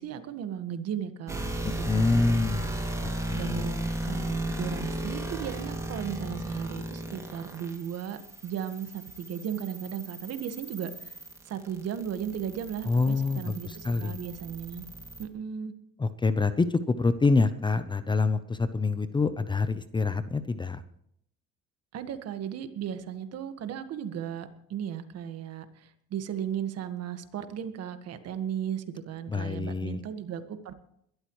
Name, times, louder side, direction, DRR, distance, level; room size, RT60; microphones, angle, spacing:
voice 1, 0.0-2.7 3.3-11.1 11.5-14.8 15.2-15.7 21.9-30.7, right 8 dB, 55° right, 9 dB, 1.7 m, -36 dB
sound 1, 1.3-15.3, right 1 dB, 10° right, 2.4 m, -36 dB
voice 2, 1.9-2.6 3.3-3.4 12.9-14.1 16.0-20.8 29.3-30.0, left 3 dB, 15° left, 12 dB, 0.7 m, -26 dB
22.0 x 13.0 x 3.2 m, 0.72 s
cardioid pair, 120°, 30 cm